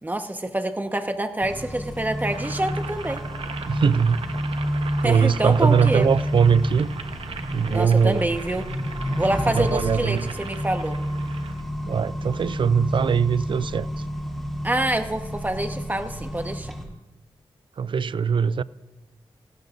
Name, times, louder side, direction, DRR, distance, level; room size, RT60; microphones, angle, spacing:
voice 1, 0.0-3.2 5.0-6.1 7.7-8.7 9.2-11.0 14.6-16.7, right 1 dB, 20° right, 1.3 m, -26 dB
Accelerating revving vroom, 1.4-16.8, equal, ahead, 3.1 m, -30 dB
Boiling, 2.2-11.6, right 5 dB, 75° right, 0.9 m, -39 dB
voice 2, 3.7-4.2 5.0-6.9 7.5-8.3 9.5-10.3 11.9-13.9 17.8-18.6, right 6 dB, 60° right, 0.4 m, -21 dB
18.0 x 16.5 x 2.6 m
cardioid pair, 50°, 10 cm